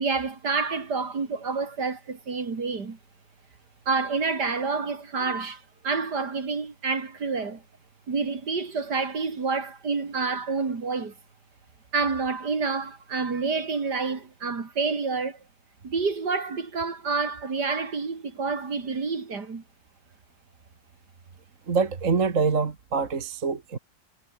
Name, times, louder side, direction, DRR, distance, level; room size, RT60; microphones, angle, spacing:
voice 1, 0.0-3.0 3.9-7.6 8.1-11.1 11.9-15.4 15.8-19.6, right 4 dB, 60° right, 3.4 m, -28 dB
voice 2, 21.7-23.8, right 5 dB, 45° right, 2.1 m, -25 dB
omnidirectional pair, 2.0 m